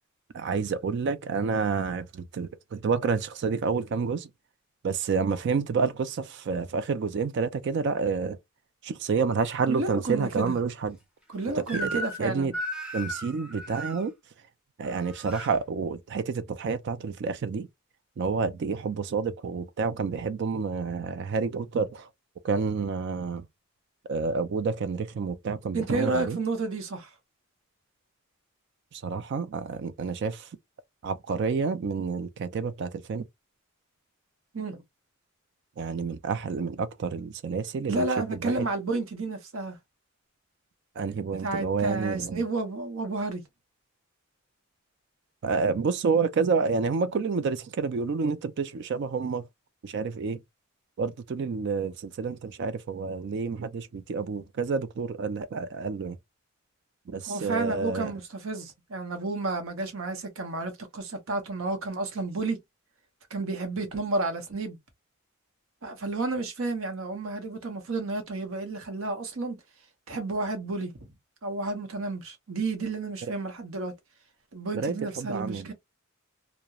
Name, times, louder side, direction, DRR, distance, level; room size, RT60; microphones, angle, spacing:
voice 1, 0.3-4.3 4.8-8.4 8.8-11.0 11.6-12.5 12.9-14.1 14.8-17.7 18.2-22.1 22.4-23.5 24.1-26.4 28.9-30.5 31.0-33.2 35.8-38.7 41.0-42.4 45.4-49.4 49.8-50.4 51.0-56.2 57.1-58.1 74.7-75.7, right 5 dB, 55° right, 0.3 m, -29 dB
voice 2, 9.7-10.6 11.3-12.5 25.7-27.1 34.5-34.8 37.9-39.8 41.3-43.4 57.2-62.6 63.3-64.8 65.8-69.6 70.1-71.1 71.4-73.9 74.5-75.7, right 3 dB, 75° right, 0.8 m, -31 dB
Crying sobbing / Screech, 11.7-12.2 12.5-14.0 14.8-15.5, equal, 5° right, 0.5 m, -35 dB
2.3 x 2.1 x 2.7 m
head